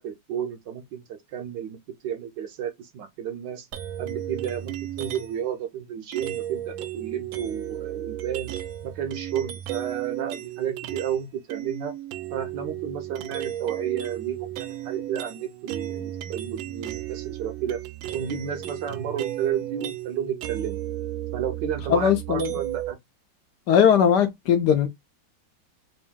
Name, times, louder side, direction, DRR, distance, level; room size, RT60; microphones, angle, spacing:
voice 1, 0.0-1.8 2.0-3.7 4.0-8.5 8.8-11.9 12.3-17.8 18.1-20.8 21.3-23.0, right 9 dB, 70° right, 1.2 m, -32 dB
sound 1, 3.7-5.5 6.1-11.2 11.5-22.9, right 13 dB, 90° right, 1.4 m, -34 dB
voice 2, 21.9-22.5 23.7-24.9, left 8 dB, 70° left, 1.0 m, -19 dB
3.4 x 2.6 x 3.5 m
omnidirectional pair, 2.2 m